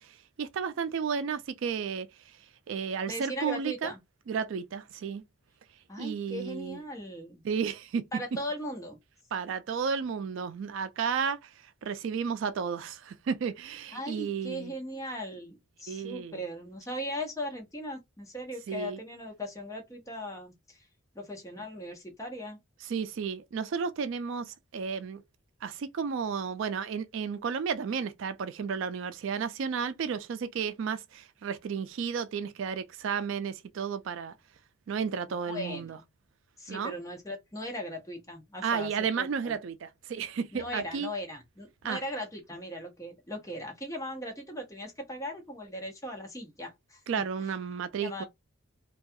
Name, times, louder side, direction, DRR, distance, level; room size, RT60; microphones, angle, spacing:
voice 1, 0.0-2.4 2.7-3.9 4.3-5.2 6.0-6.8 7.4-8.1 9.3-14.7 15.9-16.4 18.7-19.0 22.8-25.2 25.6-34.3 34.9-36.0 36.7-36.9 38.6-41.1 41.8-42.0 47.1-48.2, right 6 dB, 65° right, 0.3 m, -33 dB
voice 2, 3.1-4.0 5.9-7.4 8.1-9.0 13.9-20.9 21.1-22.6 35.3-36.0 36.6-39.6 40.5-47.0 48.0-48.2, equal, 15° left, 0.7 m, -38 dB
2.3 x 2.3 x 2.6 m
head